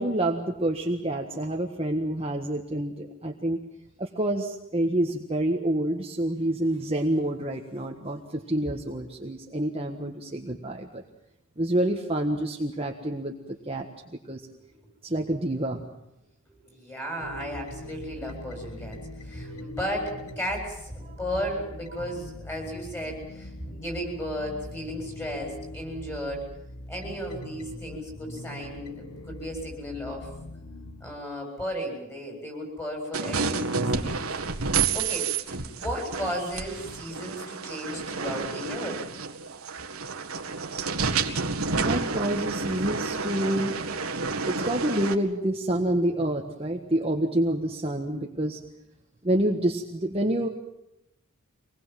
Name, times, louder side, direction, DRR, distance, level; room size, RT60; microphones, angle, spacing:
voice 1, 0.0-3.6 4.0-11.0 11.6-13.3 13.7-14.4 15.0-15.8 21.0-21.1 41.7-43.8 44.4-48.6 49.2-50.5, right 1 dB, 25° right, 2 dB, 1.5 m, -28 dB
voice 2, 16.6-26.4 26.9-30.3 31.0-34.3 34.9-35.3 35.8-39.0, equal, 10° left, 2 dB, 7.9 m, -35 dB
sound 1, 17.2-31.2, left 1 dB, 85° left, 1.6 m, -41 dB
sound 2, 33.1-45.1, right 4 dB, 85° right, 1.9 m, -30 dB
26.0 x 20.5 x 7.6 m, 0.86 s
head